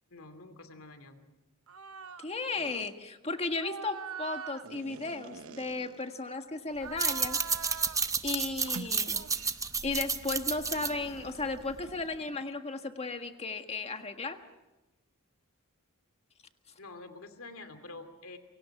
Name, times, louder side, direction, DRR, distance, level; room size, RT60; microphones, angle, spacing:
voice 1, 0.1-1.3 16.8-18.4, left 2 dB, 70° left, 8 dB, 2.6 m, -47 dB
sound 1, 1.7-2.3 2.6-2.9 3.5-6.3 6.7-8.1 8.6-9.7 10.8-12.6, right 6 dB, 70° right, 0.9 m, -44 dB
voice 2, 2.2-7.4 8.2-9.2 9.8-14.4, left 3 dB, 30° left, 6 dB, 1.7 m, -35 dB
sound 2, 6.9-12.0, right 5 dB, 15° right, 0.8 m, -32 dB
28.0 x 24.5 x 6.0 m, 1.1 s
head